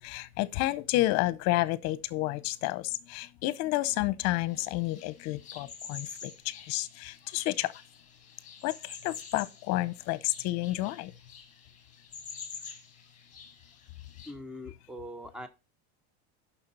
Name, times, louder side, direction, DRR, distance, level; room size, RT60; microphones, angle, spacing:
voice 1, 0.0-7.7 8.6-11.1, left 17 dB, 55° left, 0.8 m, -30 dB
sound 1, 4.5-14.3, left 6 dB, 20° left, 2.2 m, -48 dB
voice 2, 14.3-15.5, equal, 5° right, 0.7 m, -42 dB
6.6 x 5.9 x 5.4 m
supercardioid pair, 145°, 33 cm